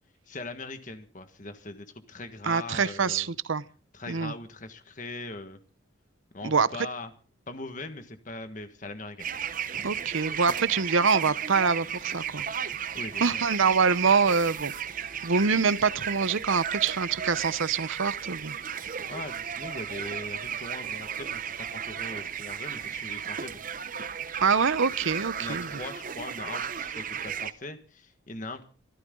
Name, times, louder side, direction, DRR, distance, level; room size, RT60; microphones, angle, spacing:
voice 1, 0.3-3.3 3.9-5.6 6.3-7.1 7.5-9.3 12.9-13.4 15.2-15.3 18.8-23.6 25.4-28.6, left 2 dB, 40° left, 1.6 m, -40 dB
voice 2, 2.4-3.6 4.1-4.3 6.4-6.9 9.8-12.4 13.2-14.7 15.0-18.5 24.4-25.7, right 5 dB, 80° right, 0.8 m, -25 dB
sound 1, 9.2-27.5, right 8 dB, 40° right, 0.8 m, -34 dB
24.5 x 14.0 x 3.8 m
head